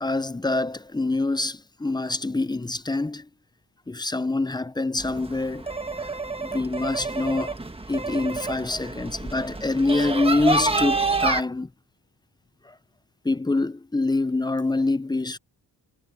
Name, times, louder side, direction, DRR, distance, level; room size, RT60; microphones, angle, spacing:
voice 1, 0.0-3.3 3.9-5.7 6.4-7.6 7.9-11.7 12.7-12.8 13.2-15.4, left 2 dB, 10° left, 0.5 m, -25 dB
sound 1, 5.0-11.4, right 3 dB, 15° right, 1.4 m, -28 dB
wide cardioid pair, 130°, 42 cm